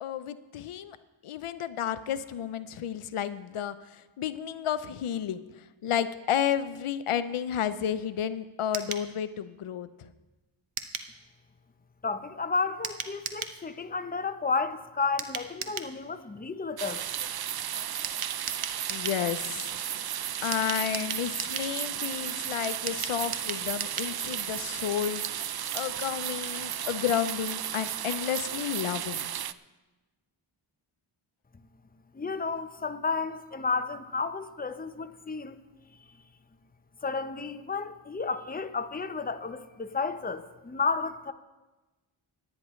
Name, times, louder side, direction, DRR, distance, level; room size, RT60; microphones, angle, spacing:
voice 1, 0.0-1.0 1.2-10.1 18.9-19.8 20.4-25.2 25.7-29.3, left 9 dB, 90° left, 0.7 m, -31 dB
sound 1, 8.7-9.1 10.8-11.1 12.8-13.6 15.2-15.9 18.0-19.2 20.5-21.7 22.9-24.1 24.4-24.5 24.8-24.9, right 7 dB, 80° right, 1.0 m, -36 dB
voice 2, 12.0-17.0 32.1-35.6 37.0-41.3, left 4 dB, 20° left, 0.7 m, -32 dB
sound 2, 16.8-29.5, right 10 dB, 50° right, 0.5 m, -34 dB
26.0 x 9.8 x 3.2 m
wide cardioid pair, 70°, 49 cm